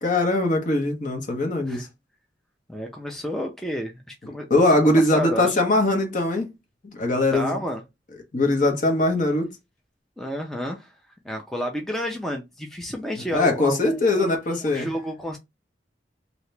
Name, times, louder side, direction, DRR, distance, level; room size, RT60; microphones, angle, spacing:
voice 1, 0.0-1.9 4.5-6.5 6.8-7.6 8.3-9.5 13.3-14.9, left 2 dB, 45° left, 0.9 m, -21 dB
voice 2, 2.7-4.5 4.8-5.6 7.3-7.8 10.2-15.4, equal, ahead, 0.4 m, -31 dB
2.8 x 2.8 x 3.2 m
head